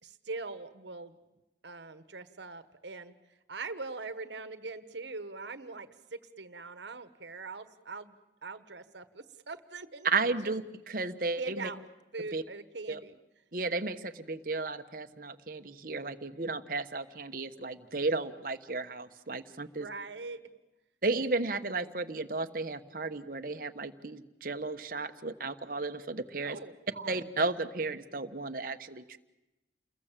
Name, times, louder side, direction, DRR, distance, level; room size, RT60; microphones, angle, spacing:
voice 1, 0.0-1.2 1.6-3.1 3.5-10.1 10.4-10.5 11.3-11.9 12.1-13.2 19.7-20.4 26.4-27.2, right 3 dB, 75° right, 11 dB, 1.4 m, -42 dB
voice 2, 10.0-11.7 12.3-12.4 12.9-13.0 13.5-19.9 21.0-26.6 27.1-29.2, right 3 dB, 50° right, 7 dB, 1.2 m, -34 dB
29.5 x 22.0 x 7.5 m, 0.97 s
head